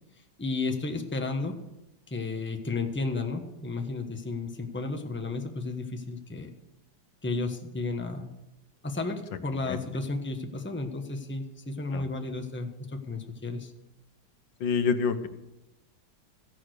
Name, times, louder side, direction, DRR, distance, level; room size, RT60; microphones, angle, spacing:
voice 1, 0.4-1.6 2.1-6.5 7.2-8.3 8.8-13.7, left 3 dB, 5° left, 4 dB, 1.1 m, -33 dB
voice 2, 14.6-15.3, left 5 dB, 85° left, 10 dB, 1.7 m, -26 dB
15.0 x 11.0 x 6.5 m, 0.93 s
omnidirectional pair, 2.0 m